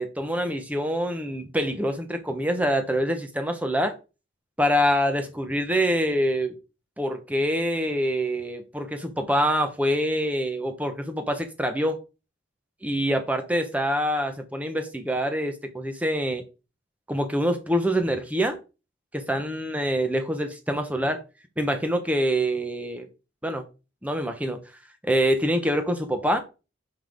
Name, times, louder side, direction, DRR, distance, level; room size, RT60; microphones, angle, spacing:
voice 1, 0.0-3.9 4.6-6.5 7.0-12.0 12.8-16.4 17.1-18.6 19.1-21.2 21.6-23.1 23.4-23.6 24.0-24.6 25.0-26.4, equal, 5° right, 0.9 m, -25 dB
5.7 x 5.6 x 3.6 m
head